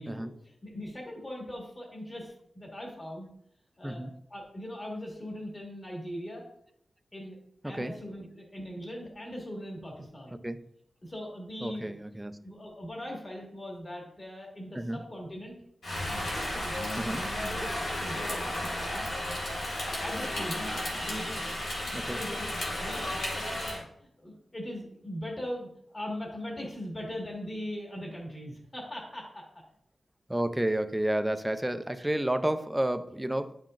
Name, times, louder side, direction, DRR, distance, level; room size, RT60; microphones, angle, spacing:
voice 1, 0.0-3.3 3.8-4.0 4.3-6.4 7.1-7.4 7.6-10.4 11.0-12.0 12.4-15.6 16.1-19.1 19.8-20.7 21.0-21.4 21.9-22.5 22.8-23.1 23.3-29.4, equal, 25° left, -2 dB, 1.7 m, -40 dB
voice 2, 7.6-8.0 10.4-10.6 11.6-12.4 14.7-15.0 17.0-17.3 21.9-22.2 30.3-33.6, right 1 dB, 5° right, 9 dB, 0.4 m, -31 dB
Rain, 15.8-23.8, left 1 dB, 75° left, 2.3 m, -33 dB
10.0 x 5.7 x 2.5 m, 0.70 s
wide cardioid pair, 170°, 0 cm